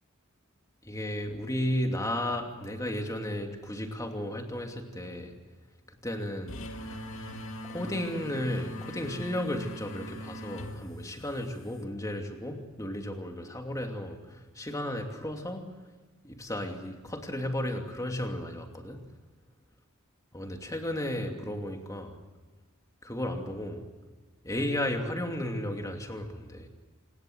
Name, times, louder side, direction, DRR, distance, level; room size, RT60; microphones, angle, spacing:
voice 1, 0.8-5.3 6.0-6.6 7.6-15.6 16.2-19.0 20.3-22.2 23.0-23.8 24.4-26.7, left 1 dB, 15° left, 3 dB, 2.7 m, -34 dB
sound 1, 6.5-11.8, equal, 65° left, 2.3 m, -42 dB
27.0 x 20.0 x 7.9 m, 1.3 s
head